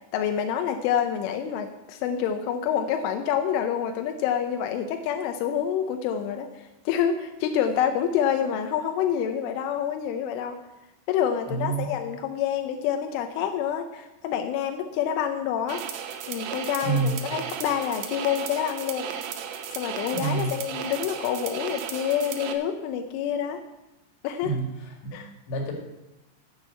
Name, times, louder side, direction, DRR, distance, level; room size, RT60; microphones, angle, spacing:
voice 1, 0.1-10.6 11.1-15.8 16.3-19.1 19.7-23.6 24.2-24.6 25.1-25.3, left 9 dB, 85° left, 6 dB, 3.3 m, -27 dB
voice 2, 11.5-11.9 16.8-17.2 20.1-20.5 24.4-24.7 25.0-25.1 25.5-25.7, right 4 dB, 70° left, 1 dB, 4.3 m, -27 dB
sound 1, 15.7-22.5, right 8 dB, 75° right, 3.1 m, -35 dB
10.5 x 8.9 x 8.2 m, 0.98 s
omnidirectional pair, 5.5 m